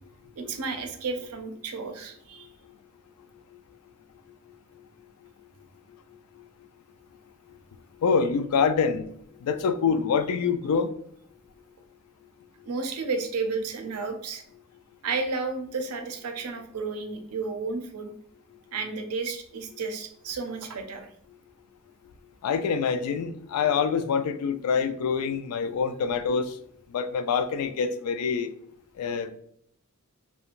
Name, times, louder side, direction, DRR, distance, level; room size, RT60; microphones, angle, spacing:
voice 1, 0.4-2.5 12.6-14.4 15.0-18.1 18.7-21.1, right 4 dB, 90° right, 6 dB, 0.5 m, -32 dB
voice 2, 8.0-9.1 9.4-10.9 22.4-26.5 26.9-28.5 29.0-29.3, left 6 dB, 85° left, 11 dB, 0.3 m, -25 dB
3.0 x 2.2 x 2.4 m, 0.70 s
head